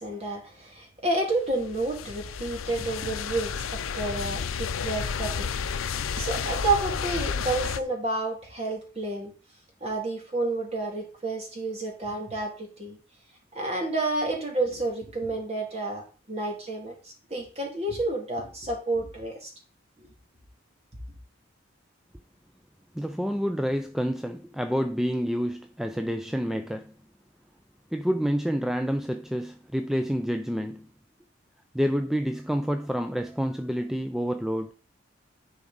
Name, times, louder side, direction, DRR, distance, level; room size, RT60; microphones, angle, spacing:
voice 1, 0.0-9.3 9.8-13.0 13.5-19.5 20.0-20.1, right 2 dB, 30° right, 2.2 m, -30 dB
sound 1, 1.4-7.8, left 6 dB, 90° left, 0.5 m, -31 dB
voice 2, 22.9-26.9 27.9-30.9 31.7-34.7, equal, ahead, 0.3 m, -28 dB
10.5 x 4.7 x 4.0 m
head